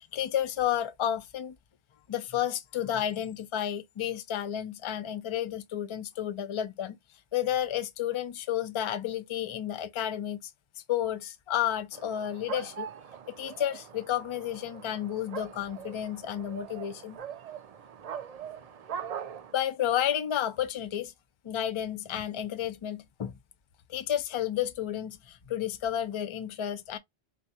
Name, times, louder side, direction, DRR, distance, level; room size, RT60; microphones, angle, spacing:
voice 1, 0.1-1.6 2.1-7.0 7.3-10.5 10.9-12.9 13.3-17.2 19.5-21.1 21.4-23.4 23.9-27.0, left 10 dB, 50° left, 0.3 m, -31 dB
sound 1, 11.9-19.5, right 8 dB, 60° right, 0.4 m, -42 dB
4.0 x 2.4 x 2.7 m
omnidirectional pair, 1.1 m